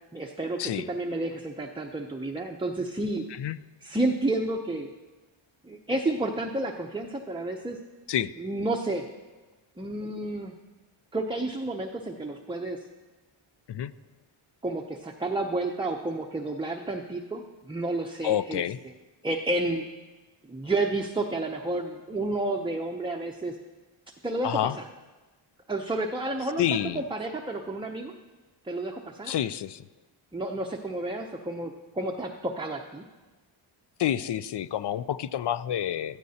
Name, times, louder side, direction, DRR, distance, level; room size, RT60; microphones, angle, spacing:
voice 1, 0.1-3.2 3.8-4.9 5.6-7.8 8.4-9.1 9.8-10.5 11.1-12.8 14.6-18.9 19.2-19.9 20.5-23.6 24.2-24.9 25.7-28.1 28.6-29.3 30.3-33.0, right 2 dB, 10° right, 1 dB, 0.6 m, -31 dB
voice 2, 18.2-18.8 24.4-24.7 26.6-27.0 29.3-29.8 34.0-36.2, left 10 dB, 60° left, 15 dB, 0.5 m, -28 dB
16.0 x 13.5 x 2.8 m, 1.2 s
wide cardioid pair, 100°, 49 cm